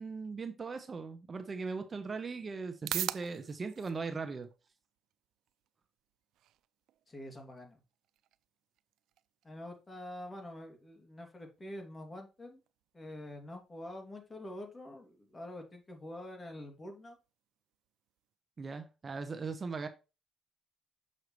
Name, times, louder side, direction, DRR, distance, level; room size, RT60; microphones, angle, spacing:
voice 1, 0.0-4.5 18.6-19.9, right 4 dB, 35° right, 1.0 m, -39 dB
sound 1, 1.4-18.4, right 13 dB, 85° right, 0.3 m, -48 dB
voice 2, 7.1-7.8 9.4-12.6 12.9-17.2, left 1 dB, 25° left, 2.6 m, -46 dB
6.6 x 6.4 x 3.1 m
cardioid pair, 90°, 0 cm